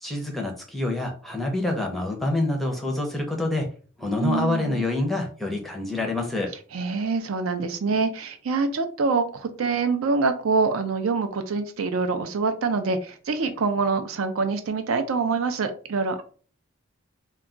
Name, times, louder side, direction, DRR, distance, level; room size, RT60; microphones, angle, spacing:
voice 1, 0.0-3.7 4.0-6.5, left 2 dB, ahead, 0.5 m, -27 dB
voice 2, 4.2-4.8 6.7-16.2, right 4 dB, 70° right, 0.4 m, -25 dB
2.3 x 2.2 x 3.7 m
head